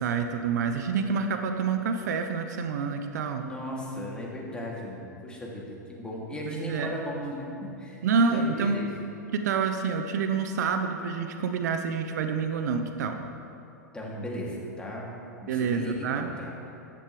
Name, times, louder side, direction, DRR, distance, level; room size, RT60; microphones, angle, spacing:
voice 1, 0.0-3.4 6.5-6.9 8.0-8.8 9.3-13.2 15.5-16.3, right 5 dB, 65° right, 6 dB, 0.8 m, -27 dB
voice 2, 3.4-8.9 13.9-15.1 15.4-16.5, equal, 10° left, -4 dB, 2.5 m, -36 dB
14.0 x 11.0 x 3.3 m, 2.7 s
hypercardioid pair, 100°, 10 cm